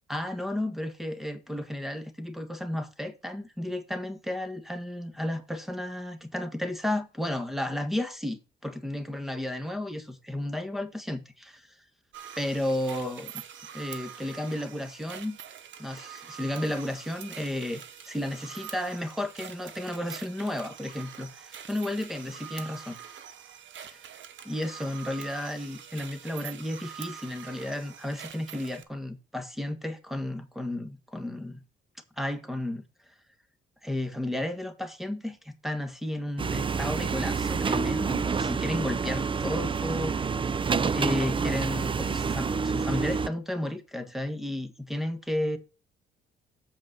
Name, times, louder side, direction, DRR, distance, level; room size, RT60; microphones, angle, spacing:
voice 1, 0.1-11.7 12.4-13.4 13.7-15.4 15.8-23.0 23.9-24.0 24.4-31.6 32.2-32.8 33.8-40.3 40.9-45.6, left 1 dB, ahead, 1.5 m, -33 dB
sound 1, 12.1-28.8, right 9 dB, 70° right, 1.2 m, -45 dB
sound 2, 36.4-43.3, right 5 dB, 25° right, 0.5 m, -28 dB
7.6 x 5.1 x 6.6 m
cardioid pair, 90°, 20 cm